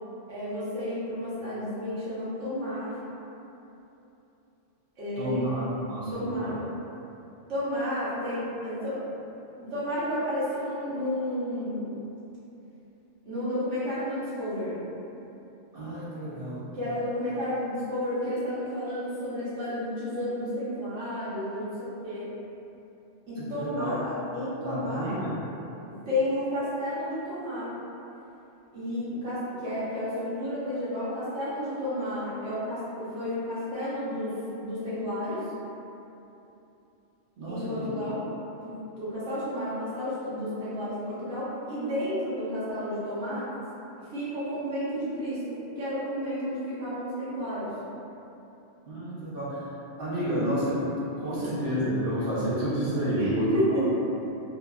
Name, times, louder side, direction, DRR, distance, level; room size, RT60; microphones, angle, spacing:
voice 1, 0.3-3.0 5.0-5.6 6.1-6.6 7.5-9.0 9.7-12.0 13.3-14.8 16.7-22.3 23.3-25.2 26.1-27.7 28.7-35.4 37.5-38.2 38.6-43.5 44.0-47.7 53.2-54.0, left 1 dB, 75° right, -11 dB, 1.2 m, -31 dB
voice 2, 5.2-6.5 15.7-16.6 23.4-23.9 24.6-25.3 37.4-37.9 48.9-49.7 50.0-50.9 51.1-54.0, right 1 dB, 55° right, -9 dB, 0.8 m, -30 dB
2.8 x 2.5 x 2.3 m, 2.9 s
omnidirectional pair, 1.2 m